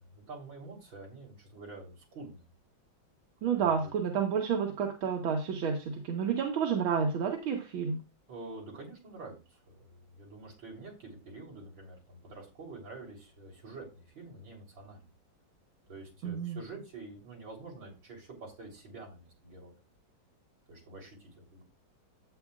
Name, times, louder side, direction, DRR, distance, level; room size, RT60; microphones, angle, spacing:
voice 1, 0.1-2.5 3.5-3.9 8.3-15.0 15.9-19.7 20.7-21.6, right 3 dB, 70° right, -1 dB, 4.5 m, -47 dB
voice 2, 3.4-8.0 16.2-16.6, right 6 dB, 90° right, 1 dB, 2.1 m, -30 dB
11.5 x 8.4 x 2.4 m, 0.29 s
omnidirectional pair, 2.2 m